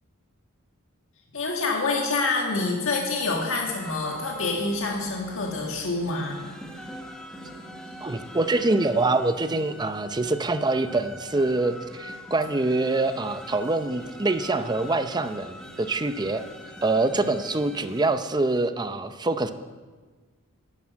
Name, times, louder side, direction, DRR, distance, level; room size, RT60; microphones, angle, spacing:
voice 1, 1.3-6.5, left 3 dB, 65° left, -1 dB, 1.7 m, -27 dB
sound 1, 3.3-18.1, equal, 5° left, 1.3 m, -43 dB
voice 2, 8.0-16.4 16.8-19.5, right 2 dB, 20° right, 10 dB, 0.6 m, -25 dB
11.0 x 9.4 x 7.5 m, 1.4 s
head